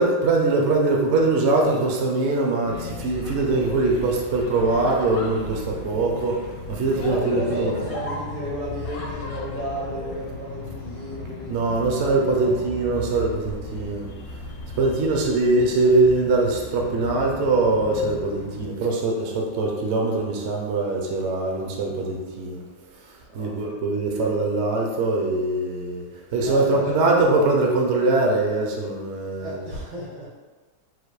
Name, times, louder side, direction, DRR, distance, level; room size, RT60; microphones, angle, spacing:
voice 1, 0.0-7.7 11.5-14.1 14.8-22.6 23.3-26.0 26.3-29.6, right 3 dB, 60° right, 0 dB, 0.7 m, -22 dB
sound 1, 2.6-18.7, left 3 dB, 65° left, 1.3 m, -36 dB
voice 2, 6.9-12.6 14.7-14.9 15.5-15.6 21.5-21.7 23.3-23.8 26.3-27.4 29.4-30.3, right 1 dB, 85° right, -5 dB, 2.1 m, -33 dB
4.0 x 2.7 x 4.7 m, 1.3 s
omnidirectional pair, 2.0 m